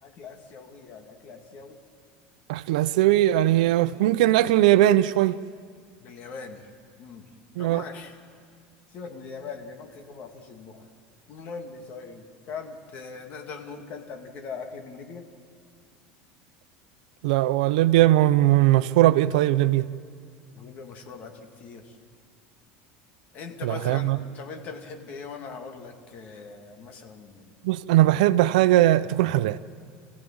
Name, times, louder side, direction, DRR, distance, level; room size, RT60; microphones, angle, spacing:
voice 1, 0.0-1.8 6.0-6.7 7.0-7.3 7.6-8.2 8.9-10.9 11.3-15.3 20.5-22.0 23.3-27.5, left 5 dB, 40° left, 2.1 m, -41 dB
voice 2, 2.5-5.4 7.6-7.8 17.2-19.9 23.6-24.2 27.6-29.6, right 14 dB, 90° right, 0.7 m, -20 dB
27.5 x 15.5 x 8.8 m
cardioid pair, 160°, 4 cm